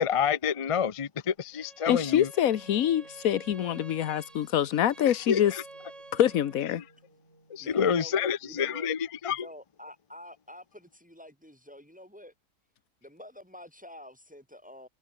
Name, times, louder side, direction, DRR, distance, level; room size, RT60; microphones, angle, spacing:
voice 1, 0.0-2.3 5.1-5.6 6.7-6.8 7.5-9.5, left 7 dB, 35° left, 0.5 m, -28 dB
Bowed string instrument, 1.5-6.7, right 3 dB, 25° right, 1.9 m, -50 dB
voice 2, 1.9-5.5 6.1-6.8, left 11 dB, 75° left, 1.3 m, -25 dB
sound 1, 2.5-8.2, right 2 dB, 55° right, 6.7 m, -61 dB
voice 3, 7.6-8.9 9.3-12.3 13.0-14.9, left 1 dB, 5° right, 6.0 m, -48 dB
omnidirectional pair, 1.5 m